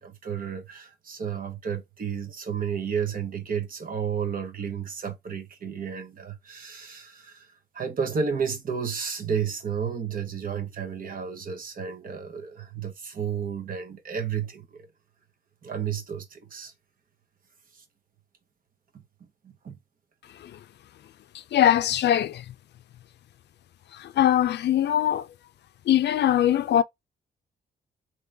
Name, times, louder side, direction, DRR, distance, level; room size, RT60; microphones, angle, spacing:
voice 1, 0.0-14.9 15.6-16.7 17.7-17.8 18.9-19.0 19.4-19.8, right 7 dB, 50° right, 1.0 m, -32 dB
voice 2, 21.5-22.4 24.2-25.2 25.9-26.8, left 11 dB, 65° left, 0.4 m, -21 dB
3.8 x 2.9 x 3.4 m
wide cardioid pair, 150°, 19 cm